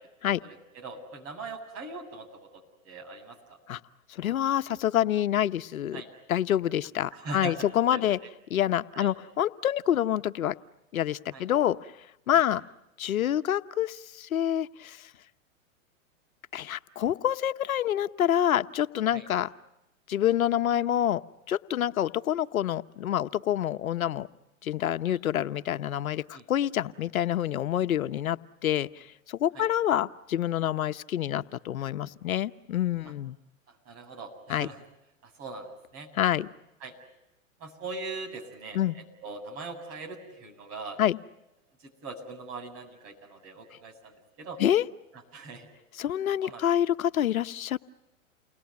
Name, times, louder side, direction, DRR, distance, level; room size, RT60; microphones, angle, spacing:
voice 1, 0.4-3.6 5.9-6.1 7.1-7.6 7.9-8.0 8.9-9.1 11.3-11.4 12.3-12.5 19.1-19.2 25.0-25.2 26.3-26.4 29.5-29.7 33.9-34.8 35.4-36.1 36.8-36.9 37.6-41.0 42.0-44.6 45.3-45.7 46.4-46.7, right 3 dB, 35° right, 2 dB, 7.7 m, -41 dB
voice 2, 4.1-6.0 6.3-8.2 8.5-10.5 10.9-11.9 12.3-12.6 13.0-15.1 16.5-19.5 20.1-21.2 21.5-24.3 24.6-33.4 34.5-34.7 36.2-36.5 38.7-39.0 41.0-41.2 44.6-44.8 45.9-47.8, left 11 dB, 80° left, 11 dB, 1.1 m, -27 dB
30.0 x 21.0 x 9.4 m, 0.93 s
hypercardioid pair, 130°, 41 cm